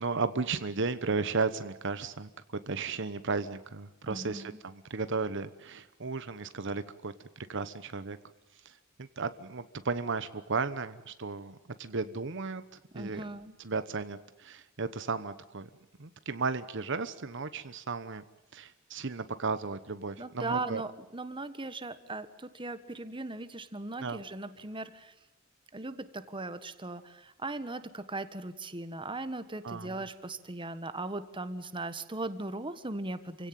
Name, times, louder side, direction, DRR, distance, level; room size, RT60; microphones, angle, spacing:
voice 1, 0.0-2.3 2.7-8.2 8.6-12.6 12.9-13.2 13.6-15.7 16.0-18.2 18.5-20.8 24.0-24.2 29.6-29.9, right 4 dB, 60° right, 12 dB, 1.1 m, -34 dB
voice 2, 4.1-4.6 12.9-13.5 20.2-25.1 25.7-33.5, right 2 dB, 25° right, 11 dB, 1.5 m, -38 dB
28.5 x 17.0 x 9.2 m, 0.96 s
head